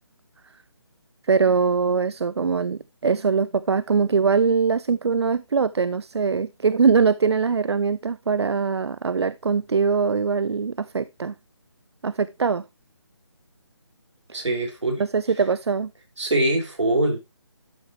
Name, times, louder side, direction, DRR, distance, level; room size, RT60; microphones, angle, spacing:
voice 1, 1.3-11.3 12.0-12.6 14.3-14.4 15.0-15.9, right 5 dB, 65° right, 0.5 m, -22 dB
voice 2, 14.3-15.0 16.2-17.2, right 1 dB, 85° right, 4.7 m, -23 dB
12.5 x 6.7 x 3.0 m
figure-of-eight pair, 165°, 15 cm